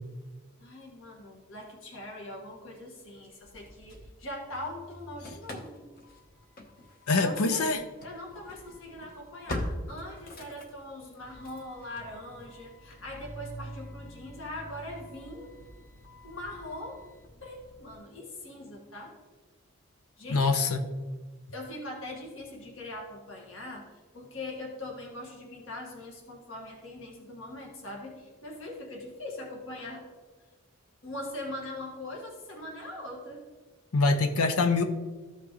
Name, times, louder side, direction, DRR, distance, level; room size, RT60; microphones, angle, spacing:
voice 1, 0.6-5.8 7.1-7.7 8.0-15.6 16.2-17.0 17.4-19.1 20.2-20.6 21.5-23.9 24.1-30.1 31.0-33.5, left 1 dB, 65° left, -1 dB, 1.8 m, -41 dB
Engine starting / Slam, 3.2-4.6 4.9-18.0, left 1 dB, 40° left, 1.0 m, -44 dB
voice 2, 7.1-7.8 20.3-20.8 33.9-34.8, left 3 dB, 85° left, 8 dB, 0.7 m, -24 dB
14.0 x 5.8 x 3.1 m, 1.3 s
head